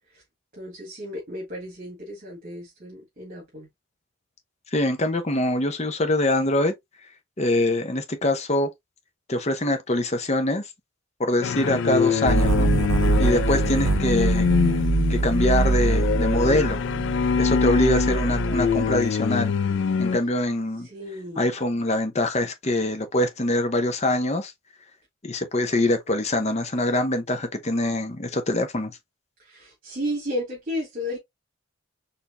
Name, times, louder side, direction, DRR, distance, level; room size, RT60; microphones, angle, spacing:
voice 1, 0.5-3.7 20.8-21.6 29.4-31.2, equal, 40° right, 1.7 m, -33 dB
voice 2, 4.7-6.7 7.4-8.7 9.3-10.6 11.2-12.7 13.2-14.5 15.1-16.8 17.4-19.5 20.0-20.9 21.4-24.5 25.2-29.0, left 1 dB, 30° left, 0.7 m, -24 dB
sound 1, 11.4-20.2, left 6 dB, 55° left, 0.3 m, -24 dB
sound 2, 12.3-19.0, right 3 dB, 65° right, 0.5 m, -24 dB
4.4 x 3.4 x 2.5 m
head